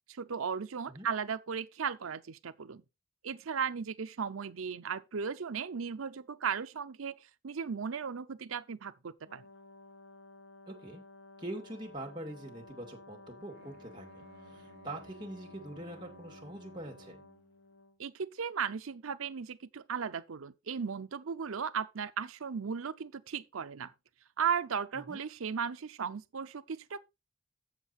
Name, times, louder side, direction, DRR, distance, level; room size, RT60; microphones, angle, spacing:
voice 1, 0.1-2.8 3.2-9.4 18.0-23.9 24.4-27.0, right 6 dB, 90° right, 0.6 m, -36 dB
Brass instrument, 9.3-18.0, left 2 dB, 65° left, 1.2 m, -54 dB
voice 2, 10.7-11.0 11.4-14.3 14.5-17.2 24.9-25.2, right 1 dB, 20° right, 2.3 m, -44 dB
Bowed string instrument, 13.5-17.6, right 2 dB, 50° right, 1.1 m, -57 dB
7.5 x 7.2 x 4.2 m
head